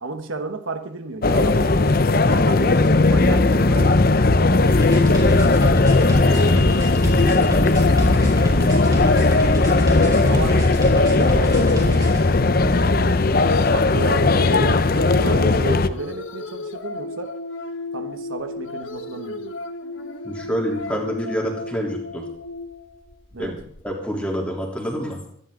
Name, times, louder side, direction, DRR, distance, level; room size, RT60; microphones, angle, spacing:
voice 1, 0.0-4.1 7.2-7.4 8.3-8.9 9.2-10.7 11.1-12.2 13.7-17.3 17.9-19.6 23.3-23.6, right 3 dB, 80° right, 7 dB, 1.2 m, -32 dB
sound 1, 1.2-15.9, left 3 dB, 45° left, 0.7 m, -17 dB
sound 2, 4.3-23.8, left 2 dB, 75° left, 1.3 m, -34 dB
sound 3, 4.7-12.2, equal, 20° right, 4.3 m, -27 dB
voice 2, 6.2-6.7 20.2-22.2 23.4-23.6 23.8-25.2, equal, 5° left, -1 dB, 3.3 m, -27 dB
24.0 x 10.5 x 3.9 m, 0.67 s
head